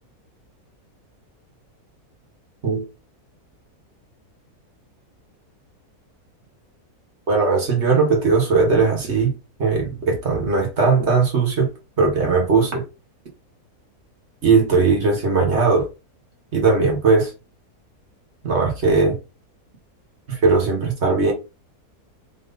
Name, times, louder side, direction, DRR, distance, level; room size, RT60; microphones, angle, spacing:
voice 1, 7.3-9.3 9.6-11.7 12.0-12.8 14.4-15.9 16.5-17.3 18.4-19.2 20.3-21.3, right 4 dB, 45° right, 1.6 m, -18 dB
4.1 x 3.1 x 3.9 m
omnidirectional pair, 1.6 m